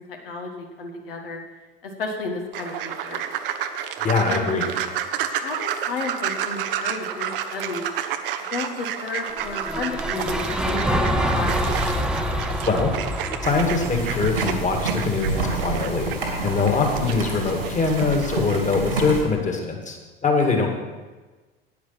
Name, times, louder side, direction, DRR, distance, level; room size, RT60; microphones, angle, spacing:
voice 1, 0.0-1.4 1.8-3.2 4.3-4.6 5.3-7.8 8.5-11.7 17.0-17.2, left 3 dB, 70° left, 2 dB, 1.7 m, -32 dB
sound 1, 2.5-18.6, right 9 dB, 60° right, 0.8 m, -31 dB
voice 2, 4.0-4.7 12.6-12.9 13.4-16.1 16.4-20.0 20.2-20.7, left 4 dB, 25° left, 3 dB, 2.2 m, -23 dB
sound 2, 9.3-15.5, equal, 5° right, 1.0 m, -26 dB
sound 3, 13.4-19.2, right 3 dB, 80° right, 2.5 m, -28 dB
10.5 x 9.3 x 5.9 m, 1.3 s
figure-of-eight pair, 70°, 30 cm